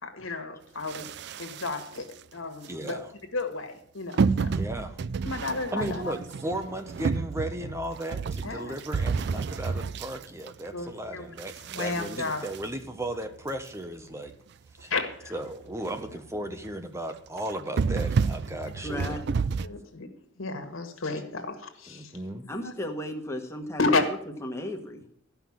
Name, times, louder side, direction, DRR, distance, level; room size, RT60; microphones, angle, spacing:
voice 1, 0.0-3.0 3.3-4.6 5.2-6.1 8.4-8.8 10.7-11.3 11.7-12.5 14.9-15.3 19.6-22.1 22.5-22.7 23.8-24.0, left 3 dB, 80° left, 6 dB, 1.7 m, -32 dB
sound 1, 0.9-2.1 2.6-3.0 4.2-10.9 11.4-13.5 14.0-14.1 14.3-14.4 14.8-14.9 15.3-15.4 15.7-16.1 16.5-16.7 17.4-19.7, right 5 dB, 55° right, 0.4 m, -30 dB
voice 2, 2.7-3.1 4.5-5.0 5.7-14.3 14.8-14.9 15.3-19.2 21.9-22.4, right 1 dB, 15° right, 7 dB, 0.8 m, -35 dB
voice 3, 18.8-19.4 22.5-23.8 24.4-25.1, left 1 dB, 15° left, 2 dB, 1.4 m, -35 dB
13.5 x 5.7 x 7.3 m, 0.68 s
head